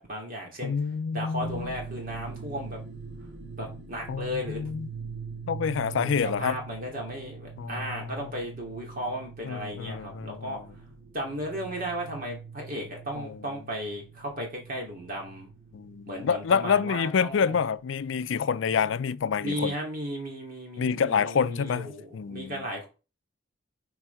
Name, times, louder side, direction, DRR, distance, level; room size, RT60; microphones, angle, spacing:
voice 1, 0.0-0.7 1.1-2.8 3.6-4.7 5.9-10.6 11.1-15.5 16.1-17.6 19.4-22.9, equal, 45° right, 2.5 m, -35 dB
voice 2, 0.6-1.7 4.1-4.9 5.5-6.6 7.6-8.1 9.4-10.6 13.2-13.3 15.7-19.7 20.8-22.6, left 6 dB, 70° left, 0.4 m, -28 dB
sound 1, 1.4-19.7, right 5 dB, 60° right, 1.4 m, -43 dB
6.2 x 4.7 x 4.5 m
head